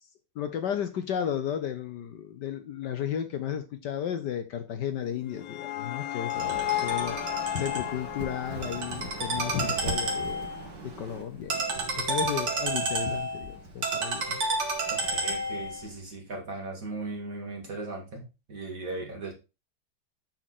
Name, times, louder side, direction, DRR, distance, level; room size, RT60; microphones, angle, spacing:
voice 1, 0.3-10.5 10.8-14.4, left 9 dB, 65° left, 1.3 m, -34 dB
sound 1, 5.0-10.2, left 15 dB, 85° left, 0.8 m, -34 dB
Ringtone, 6.3-15.9, right 2 dB, 60° right, 2.3 m, -31 dB
voice 2, 14.9-19.3, right 3 dB, 45° right, 2.4 m, -38 dB
8.0 x 4.7 x 4.2 m
omnidirectional pair, 2.1 m